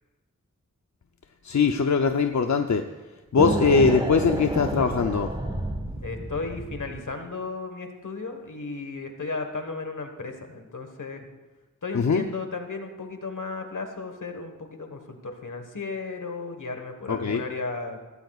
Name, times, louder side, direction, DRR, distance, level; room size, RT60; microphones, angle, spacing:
voice 1, 1.4-2.9 3.3-5.3 11.9-12.2 17.1-17.4, left 5 dB, 70° left, 5 dB, 0.6 m, -21 dB
sound 1, 3.4-7.1, right 1 dB, 15° right, 1.4 m, -30 dB
voice 2, 6.0-11.3 11.8-18.0, left 3 dB, 90° left, 5 dB, 1.5 m, -35 dB
16.5 x 16.0 x 2.4 m, 1.2 s
wide cardioid pair, 55°, 30 cm